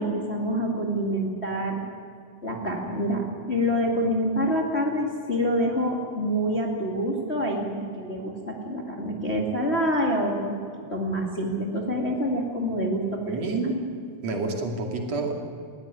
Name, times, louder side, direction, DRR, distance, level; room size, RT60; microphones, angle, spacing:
voice 1, 0.0-1.8 2.4-10.6 10.9-13.4, equal, 25° left, 0 dB, 2.0 m, -26 dB
voice 2, 13.3-13.8 14.2-15.3, right 3 dB, 60° right, 2 dB, 3.7 m, -28 dB
20.0 x 16.0 x 9.8 m, 2.4 s
omnidirectional pair, 3.5 m